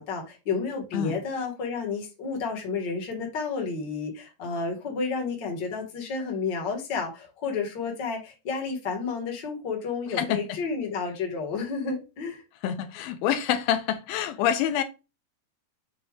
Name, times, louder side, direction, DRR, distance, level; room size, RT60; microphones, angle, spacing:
voice 1, 0.0-12.4, left 4 dB, 40° left, 1.9 m, -31 dB
voice 2, 10.2-10.6 12.6-14.8, left 10 dB, 85° left, 2.4 m, -26 dB
7.7 x 2.8 x 4.8 m
omnidirectional pair, 4.1 m